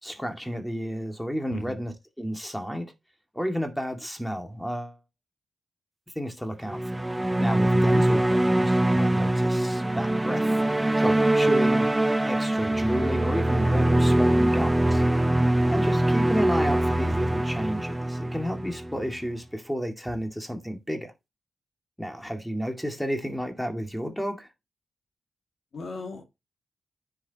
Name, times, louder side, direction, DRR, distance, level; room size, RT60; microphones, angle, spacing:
voice 1, 0.0-2.9 3.3-5.0 6.2-7.0 7.4-10.6 11.0-11.9 12.2-15.0 15.7-21.1 22.0-24.5, equal, 5° left, 2.2 m, -32 dB
voice 2, 1.5-1.8 7.7-8.0 25.7-26.2, left 3 dB, 65° left, 2.2 m, -37 dB
sound 1, 6.7-19.2, right 1 dB, 15° right, 0.7 m, -23 dB
9.7 x 6.4 x 2.9 m
cardioid pair, 55°, 0 cm